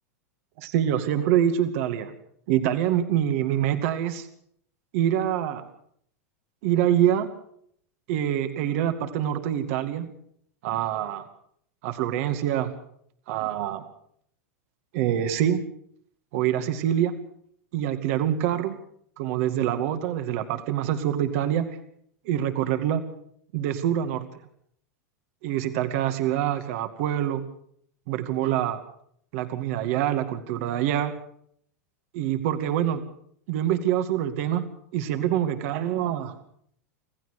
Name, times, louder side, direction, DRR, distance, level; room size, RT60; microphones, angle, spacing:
voice 1, 0.6-2.1 2.5-4.3 4.9-5.6 6.6-7.3 8.1-10.1 10.6-11.3 11.8-12.7 13.3-13.8 14.9-15.6 16.3-17.1 17.7-18.8 19.2-21.7 22.2-23.1 23.5-24.3 25.4-27.4 28.1-28.8 29.3-31.1 32.1-33.0 33.5-34.7 34.9-36.4, right 11 dB, 60° right, 8 dB, 2.2 m, -25 dB
26.5 x 15.5 x 6.6 m, 0.67 s
hypercardioid pair, 115°, 8 cm